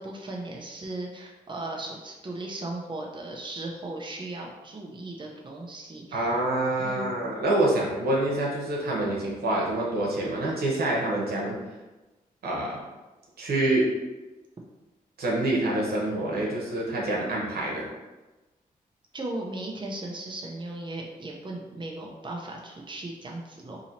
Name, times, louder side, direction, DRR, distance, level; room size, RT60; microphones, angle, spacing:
voice 1, 0.0-6.3 6.8-7.1 19.1-23.8, right 2 dB, 30° right, -1 dB, 0.7 m, -37 dB
voice 2, 6.1-11.6 12.4-12.8 13.4-13.8 15.2-17.9, right 1 dB, 80° right, -3 dB, 1.1 m, -26 dB
2.9 x 2.7 x 4.3 m, 1.1 s
cardioid pair, 50°, 16 cm